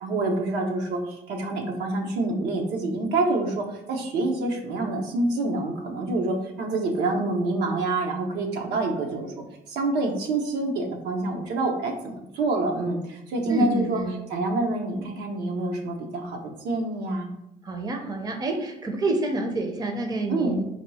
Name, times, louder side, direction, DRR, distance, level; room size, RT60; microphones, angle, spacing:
voice 1, 0.0-9.3 9.7-14.0 14.3-17.3 20.3-20.6, right 2 dB, 85° right, 2 dB, 0.8 m, -27 dB
voice 2, 13.5-14.2 17.6-20.6, right 2 dB, 20° right, 4 dB, 0.6 m, -28 dB
4.5 x 2.3 x 4.1 m, 0.84 s
cardioid pair, 110°, 17 cm